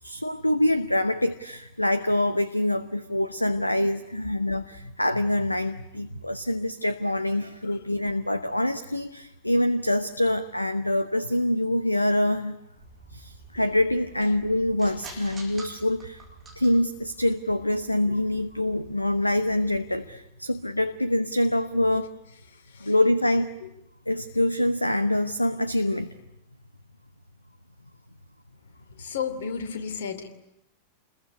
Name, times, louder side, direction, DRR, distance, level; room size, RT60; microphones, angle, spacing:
voice 1, 0.0-12.6 13.1-16.2 16.6-22.1 22.8-23.5 24.1-26.1, left 1 dB, 85° left, 13 dB, 0.9 m, -25 dB
sound 1, 12.7-20.1, right 3 dB, 20° right, 5.8 m, -49 dB
voice 2, 29.0-30.3, left 6 dB, 60° left, 8 dB, 2.9 m, -33 dB
28.5 x 21.5 x 9.6 m, 0.87 s
figure-of-eight pair, 90°, 0 cm